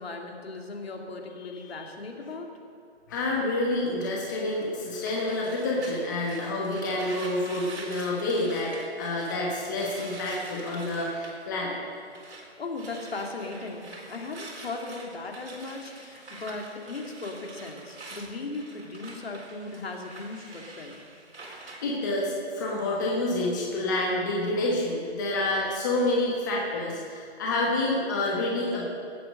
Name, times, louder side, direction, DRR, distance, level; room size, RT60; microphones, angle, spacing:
voice 1, 0.0-2.5 12.3-21.0, left 3 dB, 65° left, 1 dB, 2.8 m, -37 dB
voice 2, 3.1-11.8 21.8-28.8, left 2 dB, 15° left, -3 dB, 1.3 m, -28 dB
sound 1, 4.5-12.5 12.7-22.0, right 2 dB, 80° right, 4.2 m, -45 dB
17.5 x 8.7 x 6.6 m, 2.2 s
hypercardioid pair, 170°, 33 cm